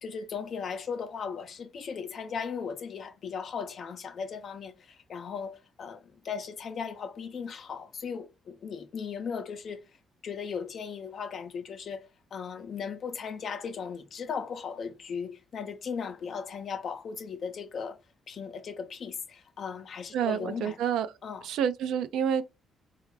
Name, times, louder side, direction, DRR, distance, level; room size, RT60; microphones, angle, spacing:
voice 1, 0.0-9.8 10.2-18.0 18.3-20.8 21.2-21.5, left 6 dB, 55° left, 0.5 m, -37 dB
voice 2, 20.1-21.1 21.4-22.4, right 8 dB, 85° right, 0.4 m, -28 dB
3.3 x 2.3 x 3.1 m
cardioid pair, 90°, 0 cm